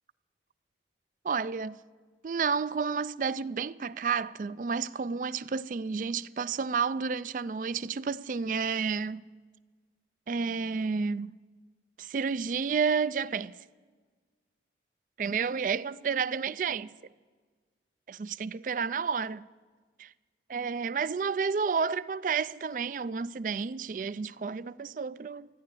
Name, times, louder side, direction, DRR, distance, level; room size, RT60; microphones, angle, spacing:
voice 1, 1.2-1.8 2.2-9.2 10.3-11.3 12.0-13.5 15.2-16.9 18.1-19.4 20.0-20.1 20.5-25.5, right 5 dB, 45° right, 0.3 m, -31 dB
14.5 x 10.5 x 8.3 m
head